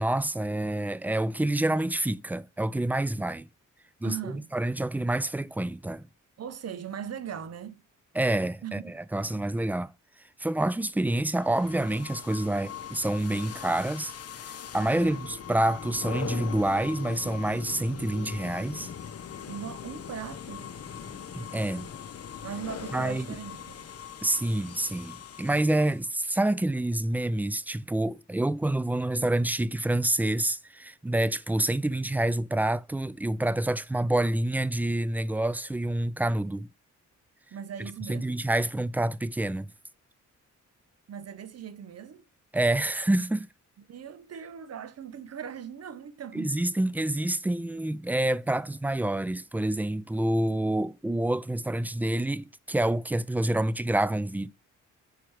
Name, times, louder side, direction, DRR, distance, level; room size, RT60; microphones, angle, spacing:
voice 1, 0.0-3.5 4.0-6.0 8.2-9.9 10.4-14.1 14.7-18.9 21.3-21.9 22.9-23.3 24.2-36.7 38.1-39.7 42.5-43.5 46.3-54.5, right 1 dB, 5° right, 0.3 m, -27 dB
voice 2, 4.0-4.5 6.4-7.8 8.6-9.0 9.3-9.4 14.9-15.3 19.5-20.7 22.4-23.9 37.5-38.4 41.1-42.2 43.9-46.6, right 8 dB, 55° right, 0.8 m, -39 dB
sound 1, 11.3-26.1, left 8 dB, 50° left, 0.8 m, -41 dB
4.8 x 4.5 x 4.8 m
cardioid pair, 65°, 31 cm